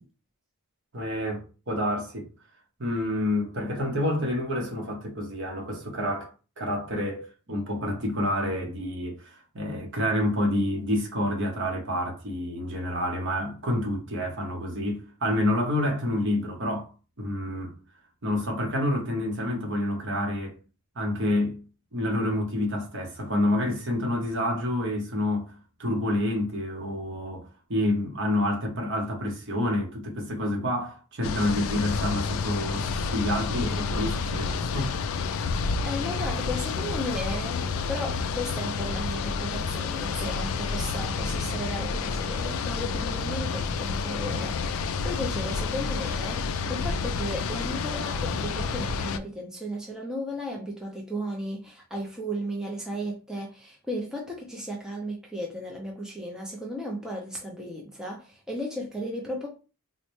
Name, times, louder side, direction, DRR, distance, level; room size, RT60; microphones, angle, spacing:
voice 1, 0.9-2.3 2.8-16.9 17.2-17.7 18.2-20.6 20.9-21.6 21.9-25.5 25.8-34.9, left 1 dB, 55° right, 1.0 m, -28 dB
sound 1, 31.2-49.2, left 5 dB, 65° left, 0.3 m, -29 dB
voice 2, 35.8-59.5, equal, 5° right, 0.5 m, -35 dB
4.0 x 2.1 x 3.1 m
head